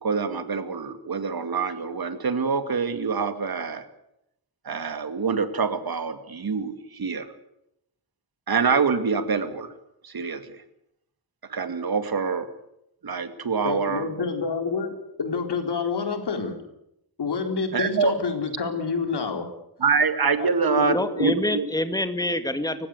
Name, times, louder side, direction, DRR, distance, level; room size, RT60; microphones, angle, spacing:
voice 1, 0.0-3.8 4.6-7.3 8.5-9.7 10.0-10.6 11.5-12.5 13.0-14.1 17.7-18.1 19.8-21.7, right 5 dB, 65° right, 9 dB, 2.4 m, -25 dB
voice 2, 13.6-14.9 15.2-16.6 17.2-19.5 20.4-20.5 20.8-21.3, left 5 dB, 80° left, 5 dB, 4.3 m, -28 dB
voice 3, 20.9-22.9, left 1 dB, 10° left, 9 dB, 2.1 m, -26 dB
30.0 x 15.5 x 8.2 m, 0.82 s
wide cardioid pair, 125°, 40 cm